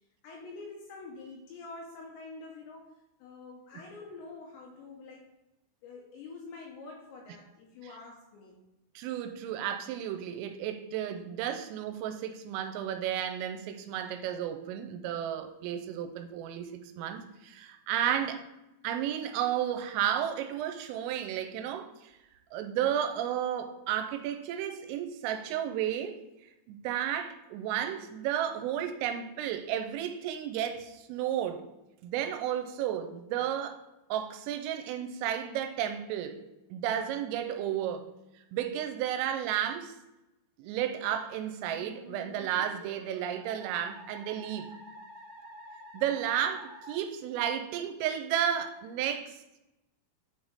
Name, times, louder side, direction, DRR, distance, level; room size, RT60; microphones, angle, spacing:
voice 1, 0.2-5.3 5.8-8.6, left 3 dB, 80° left, 2.7 m, -46 dB
voice 2, 9.0-18.4 18.8-22.1 22.5-26.2 26.7-31.6 32.0-33.8 34.1-36.4 36.7-38.1 38.5-40.0 40.6-44.7 45.9-49.4, right 10 dB, 85° right, 3.2 m, -33 dB
Musical instrument, 41.7-47.0, equal, 70° right, 2.8 m, -49 dB
8.9 x 3.5 x 4.0 m
omnidirectional pair, 5.9 m